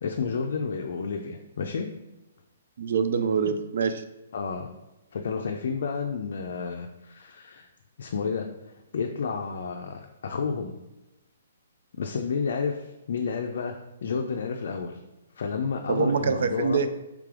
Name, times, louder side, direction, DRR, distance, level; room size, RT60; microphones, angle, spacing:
voice 1, 0.0-1.9 3.4-3.5 4.3-4.7 5.1-7.7 8.0-10.8 12.0-13.7 14.0-15.0 15.4-16.9, left 5 dB, 65° left, 2 dB, 0.4 m, -31 dB
voice 2, 2.8-4.0 15.9-16.9, right 6 dB, 65° right, 10 dB, 0.3 m, -25 dB
3.3 x 3.3 x 3.7 m, 1.0 s
hypercardioid pair, 150°, 0 cm